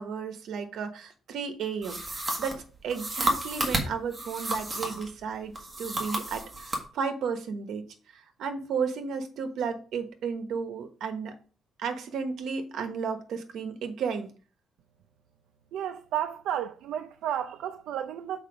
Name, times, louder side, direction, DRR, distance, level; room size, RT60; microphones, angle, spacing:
voice 1, 0.0-7.8 8.1-11.3 11.8-14.3, right 6 dB, 65° right, 1.2 m, -33 dB
sound 1, 1.8-5.1 5.5-6.9, right 1 dB, 15° right, 1.5 m, -31 dB
voice 2, 15.7-18.4, right 10 dB, 85° right, 0.5 m, -32 dB
6.6 x 4.7 x 5.0 m
cardioid pair, 175°, 0 cm